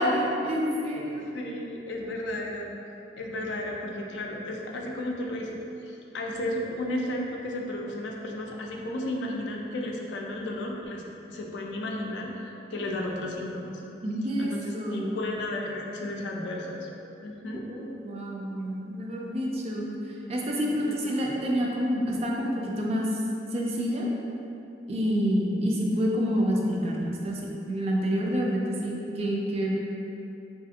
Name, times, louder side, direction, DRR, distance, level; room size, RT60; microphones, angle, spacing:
voice 1, 0.0-1.4 14.0-15.2 17.7-19.9 20.3-23.1 23.5-24.1 24.9-29.7, equal, 35° right, -2 dB, 0.4 m, -28 dB
voice 2, 1.3-2.7 3.2-11.0 11.3-12.3 12.7-13.8 14.4-16.9 17.2-17.6 20.7-20.9, left 1 dB, 80° left, 0 dB, 0.4 m, -33 dB
3.2 x 2.4 x 2.7 m, 2.8 s
head